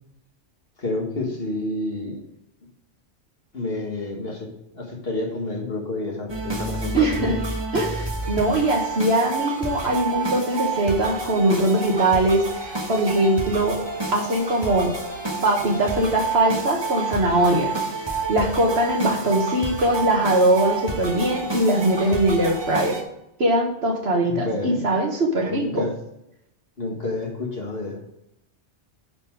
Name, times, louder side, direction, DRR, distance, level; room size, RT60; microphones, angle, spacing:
voice 1, 0.8-2.2 3.5-7.3 24.3-24.8 25.5-25.9 26.8-28.0, left 2 dB, 50° left, 0 dB, 2.0 m, -29 dB
sound 1, 6.3-23.0, right 3 dB, 20° right, 1.3 m, -29 dB
voice 2, 6.9-7.4 7.7-13.8 14.1-14.9 15.4-17.7 18.3-23.0 23.4-25.8, right 1 dB, 55° right, 2 dB, 1.6 m, -21 dB
10.0 x 4.4 x 4.7 m, 0.84 s
omnidirectional pair, 1.3 m